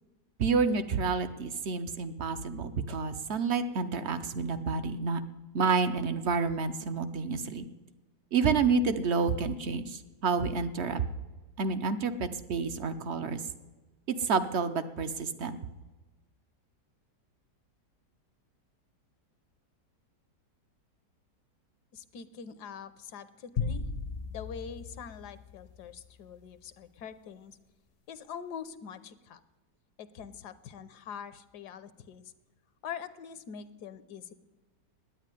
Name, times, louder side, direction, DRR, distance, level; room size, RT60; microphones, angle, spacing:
voice 1, 0.4-5.2 5.5-7.7 8.3-11.0 11.6-13.4 14.1-15.6, right 5 dB, 55° right, 11 dB, 0.8 m, -29 dB
voice 2, 21.9-23.8 24.2-27.6 28.1-29.4 30.0-32.2 32.8-34.3, left 7 dB, 70° left, 13 dB, 1.3 m, -44 dB
sound 1, 23.6-26.1, left 5 dB, 50° left, 0.7 m, -36 dB
10.5 x 9.8 x 9.8 m, 1.2 s
omnidirectional pair, 1.9 m